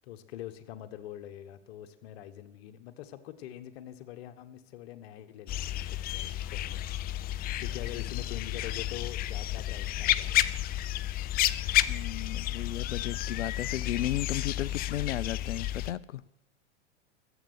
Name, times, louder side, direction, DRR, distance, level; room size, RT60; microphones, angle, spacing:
voice 1, 0.0-6.8 7.1-10.6, left 12 dB, 60° left, 1.4 m, -44 dB
sound 1, 5.5-15.9, left 13 dB, 25° left, 0.5 m, -31 dB
voice 2, 11.9-16.2, left 12 dB, 85° left, 0.6 m, -34 dB
14.0 x 8.1 x 8.0 m
hypercardioid pair, 100°, 36 cm